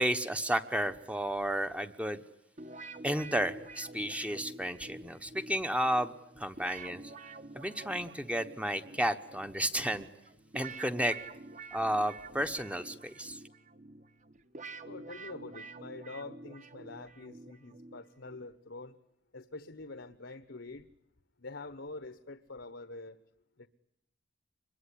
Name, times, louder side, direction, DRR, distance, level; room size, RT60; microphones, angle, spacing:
voice 1, 0.0-2.2 3.0-7.0 7.5-10.1 10.5-11.2 11.7-13.4, equal, 5° right, 9 dB, 1.1 m, -32 dB
sound 1, 2.6-18.5, right 3 dB, 40° right, 1.5 m, -48 dB
voice 2, 14.8-19.0 19.3-20.9 21.4-23.2 23.6-23.7, left 3 dB, 65° left, 13 dB, 1.2 m, -45 dB
25.5 x 22.0 x 10.0 m, 0.78 s
head